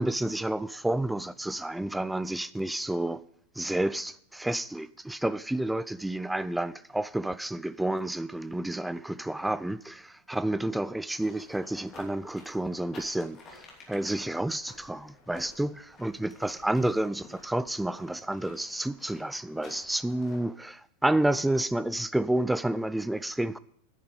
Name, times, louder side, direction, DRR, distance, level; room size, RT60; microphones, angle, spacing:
voice 1, 0.0-3.2 3.6-23.6, right 1 dB, 5° right, 0.3 m, -30 dB
sound 1, 11.2-20.6, left 3 dB, 30° left, 3.0 m, -53 dB
11.0 x 9.5 x 5.1 m
figure-of-eight pair, 90°, 0 cm